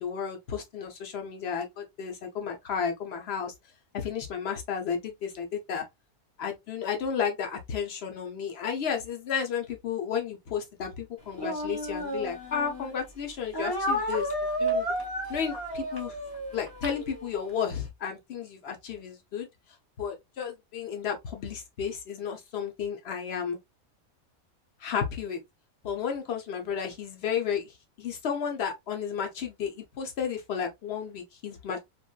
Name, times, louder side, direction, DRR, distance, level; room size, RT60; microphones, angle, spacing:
voice 1, 0.0-3.5 3.9-5.9 6.4-14.3 14.6-14.9 15.3-16.2 16.5-19.5 20.0-23.6 24.8-25.4 25.8-31.8, left 7 dB, 50° left, 0.9 m, -33 dB
Speech, 11.3-12.9 13.5-17.6, equal, 20° left, 0.7 m, -32 dB
3.0 x 2.6 x 2.2 m
omnidirectional pair, 1.5 m